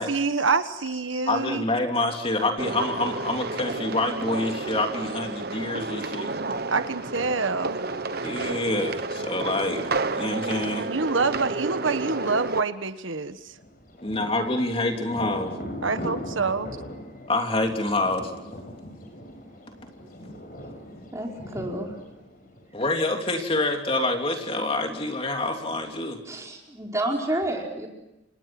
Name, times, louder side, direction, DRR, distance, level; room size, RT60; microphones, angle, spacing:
voice 1, 0.0-1.6 6.7-7.8 10.9-13.5 15.8-16.8, right 4 dB, 90° right, 10 dB, 1.4 m, -26 dB
voice 2, 1.1-6.3 8.2-9.9 10.1-10.9 14.0-15.5 17.3-18.3 22.7-26.2, left 2 dB, 30° left, 3 dB, 3.2 m, -27 dB
sound 1, 2.6-12.6, right 3 dB, 55° right, 1.3 m, -31 dB
voice 3, 8.0-8.3 21.1-21.9 26.3-27.9, right 1 dB, 15° right, 0 dB, 4.8 m, -30 dB
Thunder, 13.5-23.0, equal, 45° left, 6.1 m, -39 dB
29.5 x 26.0 x 6.1 m, 0.93 s
head